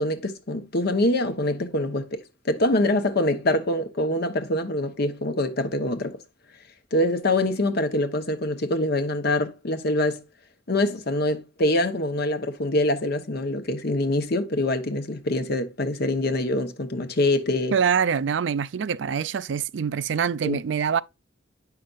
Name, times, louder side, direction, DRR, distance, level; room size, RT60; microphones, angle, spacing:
voice 1, 0.0-6.2 6.9-10.2 10.7-17.7 20.4-20.6, left 1 dB, 60° left, 1.1 m, -24 dB
voice 2, 17.7-21.0, right 7 dB, 70° right, 0.4 m, -24 dB
8.4 x 5.8 x 2.5 m
head